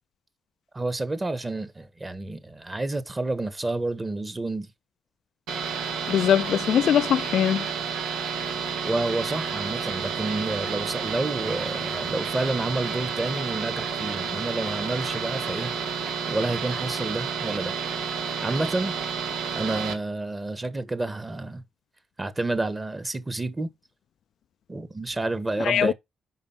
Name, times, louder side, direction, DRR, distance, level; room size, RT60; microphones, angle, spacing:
voice 1, 0.7-4.7 8.8-15.7 16.3-17.7 18.1-18.9 19.5-21.6 22.2-23.7 24.7-25.9, right 2 dB, 20° right, 1.5 m, -29 dB
sound 1, 5.5-19.9, right 6 dB, 85° right, 2.1 m, -30 dB
voice 2, 6.1-7.7 25.6-25.9, left 9 dB, 65° left, 0.4 m, -21 dB
6.3 x 5.5 x 5.7 m
cardioid pair, 90°, 0 cm